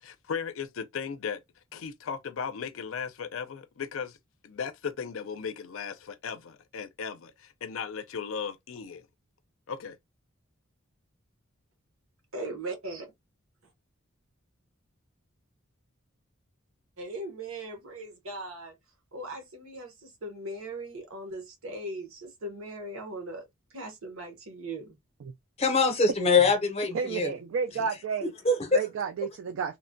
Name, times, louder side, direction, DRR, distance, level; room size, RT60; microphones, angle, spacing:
voice 1, 0.0-1.4 1.7-4.2 4.4-9.1 9.7-10.0, left 6 dB, 70° left, 0.4 m, -36 dB
voice 2, 12.3-13.1 17.0-18.7 19.1-23.5 23.7-25.0, right 1 dB, 85° right, 1.0 m, -39 dB
voice 3, 25.6-27.3 28.4-28.8, left 4 dB, 30° left, 0.6 m, -23 dB
voice 4, 26.9-28.3 28.7-29.8, right 6 dB, 65° right, 0.3 m, -31 dB
3.0 x 2.2 x 2.5 m
head